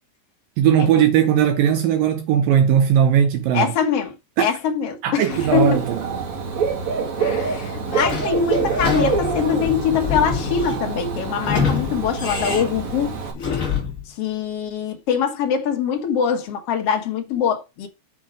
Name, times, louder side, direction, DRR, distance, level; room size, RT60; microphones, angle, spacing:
voice 1, 0.6-3.7 4.4-4.5 5.0-6.0, right 9 dB, 85° right, 1.9 m, -18 dB
voice 2, 3.5-5.8 7.2-13.1 14.1-17.9, left 7 dB, 75° left, 1.4 m, -23 dB
Dog / Bird, 5.3-13.3, right 5 dB, 45° right, 3.4 m, -26 dB
Sliding door / Squeak, 7.9-14.0, left 6 dB, 60° left, 0.8 m, -27 dB
7.1 x 5.5 x 5.0 m
omnidirectional pair, 5.1 m